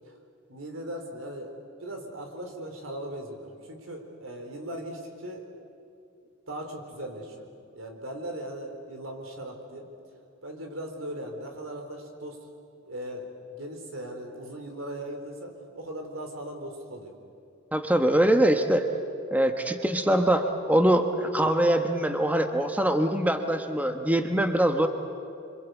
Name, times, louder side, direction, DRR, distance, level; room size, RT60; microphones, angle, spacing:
voice 1, 0.5-5.5 6.5-7.5 7.7-9.9 10.4-12.4 12.9-17.1, right 1 dB, 80° right, 4 dB, 4.1 m, -38 dB
voice 2, 17.7-18.9 19.3-24.9, right 1 dB, 10° right, 6 dB, 1.1 m, -23 dB
27.0 x 25.0 x 8.3 m, 2.6 s
head